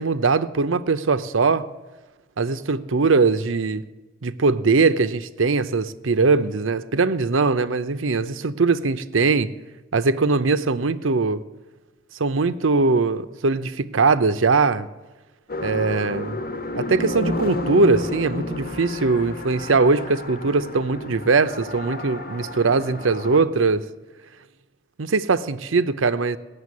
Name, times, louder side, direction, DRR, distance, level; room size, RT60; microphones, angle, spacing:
voice 1, 0.0-1.7 2.4-3.8 4.2-9.5 9.9-11.4 12.2-14.9 15.6-16.4 16.7-23.8 25.0-26.4, right 4 dB, 80° right, 12 dB, 0.7 m, -21 dB
sound 1, 15.5-23.4, left 2 dB, 50° left, 1.1 m, -31 dB
18.0 x 6.9 x 9.6 m, 1.2 s
head